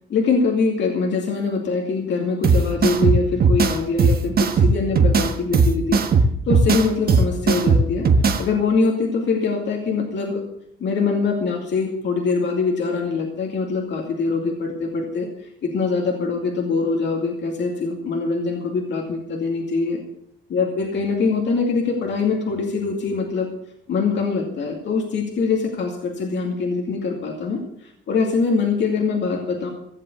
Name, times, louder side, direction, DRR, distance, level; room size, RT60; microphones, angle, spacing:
voice 1, 0.1-6.0 6.5-8.1 8.4-10.4 10.8-20.0 20.5-23.5 23.9-29.7, left 4 dB, 65° left, 1 dB, 2.4 m, -23 dB
sound 1, 2.4-8.4, right 4 dB, 50° right, 1.4 m, -18 dB
16.0 x 7.7 x 8.2 m, 0.75 s
cardioid pair, 90°, 20 cm